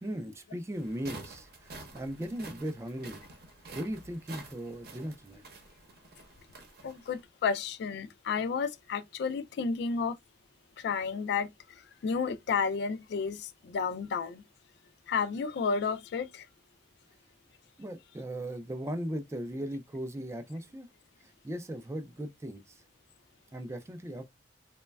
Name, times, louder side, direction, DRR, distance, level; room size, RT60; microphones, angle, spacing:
voice 1, 0.0-3.2 3.7-5.4 17.8-20.9 21.2-22.8 23.5-24.3, right 1 dB, 15° right, 0.3 m, -38 dB
sound 1, 0.7-7.2, right 3 dB, 55° right, 0.8 m, -49 dB
voice 2, 6.8-10.2 10.8-14.4 15.1-16.5, left 5 dB, 60° left, 0.3 m, -32 dB
3.1 x 2.1 x 2.2 m
head